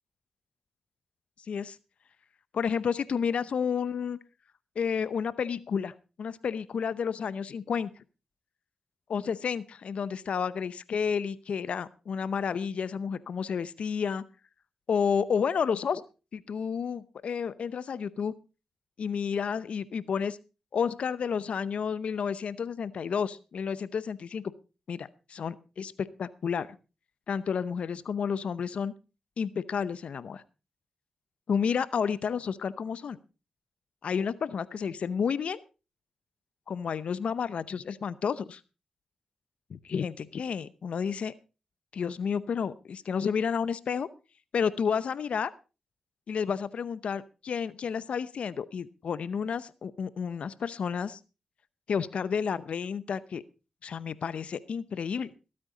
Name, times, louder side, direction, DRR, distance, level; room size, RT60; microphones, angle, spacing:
voice 1, 2.5-4.2 4.8-7.9 9.1-14.2 14.9-16.0 16.3-18.3 19.0-20.4 20.7-24.4 24.9-26.7 27.3-28.9 29.4-30.4 31.5-33.2 34.0-35.6 36.7-38.6 39.7-41.3 41.9-44.1 44.5-45.5 46.3-51.2 51.9-53.4 53.8-55.3, left 6 dB, 70° left, 17 dB, 0.7 m, -31 dB
20.0 x 8.8 x 4.0 m, 0.32 s
supercardioid pair, 40°, 2 cm